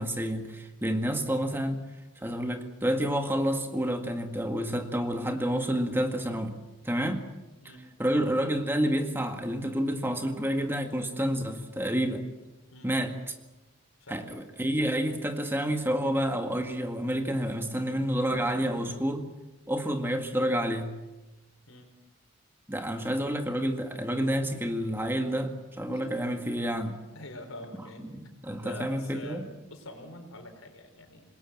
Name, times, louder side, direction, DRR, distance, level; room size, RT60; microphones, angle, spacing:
voice 1, 0.0-1.8 2.2-6.6 6.8-7.2 8.0-12.2 12.8-13.1 14.1-19.3 19.7-20.9 22.7-27.0 28.1-29.5, equal, 10° right, 5 dB, 1.9 m, -29 dB
voice 2, 12.7-13.1 14.0-14.3 21.7-21.9 25.9-26.4 27.1-31.2, left 1 dB, 90° left, 6 dB, 4.8 m, -45 dB
27.0 x 21.0 x 7.5 m, 1.1 s
head